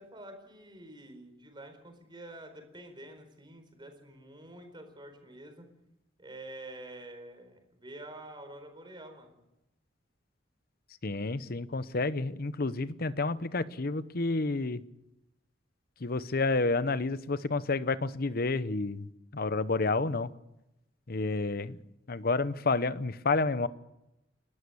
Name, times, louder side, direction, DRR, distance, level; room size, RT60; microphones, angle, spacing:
voice 1, 0.0-5.7 6.2-9.4, right 1 dB, 25° right, 6 dB, 4.4 m, -48 dB
voice 2, 11.0-14.8 16.0-19.1 19.3-20.3 21.1-21.8 22.1-23.7, left 3 dB, 50° left, 15 dB, 0.9 m, -30 dB
30.0 x 13.0 x 7.1 m, 0.90 s
head